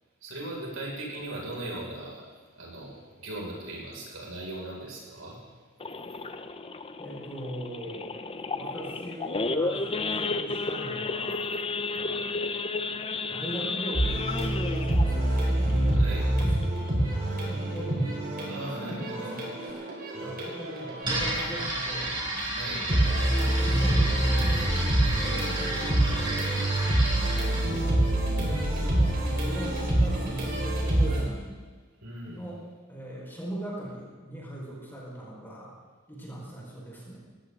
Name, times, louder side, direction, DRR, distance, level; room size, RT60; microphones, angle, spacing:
voice 1, 0.2-5.4 15.8-16.3 18.4-19.3 20.1-20.3 22.5-22.9 25.0-25.5 32.0-32.4, right 1 dB, 75° right, -3 dB, 6.0 m, -39 dB
Idling / Accelerating revving vroom / Sawing, 5.8-16.9 17.3-17.5 17.7-17.8 18.3-18.6 19.1-19.2 19.4-19.7, left 3 dB, 25° left, 0.7 m, -33 dB
voice 2, 7.0-8.1 8.5-11.5 11.9-12.9 13.3-15.7 16.1-16.9 17.2-19.9 20.2-22.2 22.7-25.5 25.8-26.3 27.5-28.1 28.4-31.6 32.3-32.6 32.9-35.7 36.1-37.2, right 1 dB, 10° left, -5 dB, 5.0 m, -40 dB
sound 1, 13.9-22.4 22.8-31.2, right 1 dB, 45° right, 4.4 m, -26 dB
sound 2, 21.0-27.7, right 1 dB, 20° right, 5.2 m, -32 dB
18.5 x 17.5 x 3.9 m, 1.5 s
head